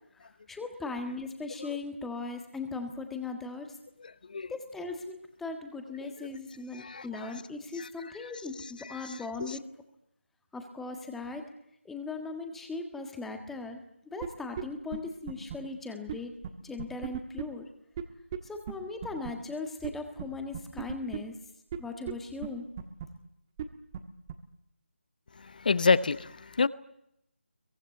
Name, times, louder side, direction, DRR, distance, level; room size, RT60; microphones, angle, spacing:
voice 1, 0.5-3.7 4.5-9.6 10.5-11.4 11.8-13.8 14.1-16.3 16.6-17.7 18.4-21.4 21.8-22.6, left 3 dB, 5° left, 5 dB, 1.6 m, -38 dB
voice 2, 4.0-4.5 6.0-6.1 6.7-7.3 7.7-8.3 8.8-9.6 25.4-26.7, left 4 dB, 45° left, 17 dB, 0.9 m, -30 dB
sound 1, 14.2-14.3 14.6-14.7 14.9-15.0 15.3-15.6 16.1-16.2 16.4-16.5 16.8-17.4 18.0-18.1 18.3-18.4 18.7-18.8 19.0-19.3 19.8-19.9 20.2-20.3 20.5-21.2 21.7-21.8 22.1-22.2 22.4-22.5 22.8-23.1 23.6-23.7 23.9-24.0 24.3-24.4, right 10 dB, 20° right, 1.4 m, -35 dB
23.0 x 22.5 x 9.3 m, 0.78 s
figure-of-eight pair, 160°, 7 cm